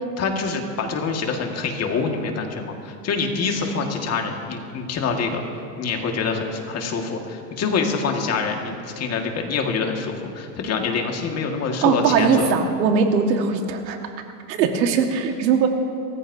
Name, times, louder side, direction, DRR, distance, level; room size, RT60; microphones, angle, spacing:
voice 1, 0.2-5.4 5.8-12.5, left 4 dB, 30° left, 2 dB, 1.8 m, -25 dB
voice 2, 11.8-14.1 14.5-15.7, right 6 dB, 90° right, 4 dB, 1.8 m, -20 dB
29.5 x 14.5 x 2.7 m, 2.5 s
supercardioid pair, 135°, 49 cm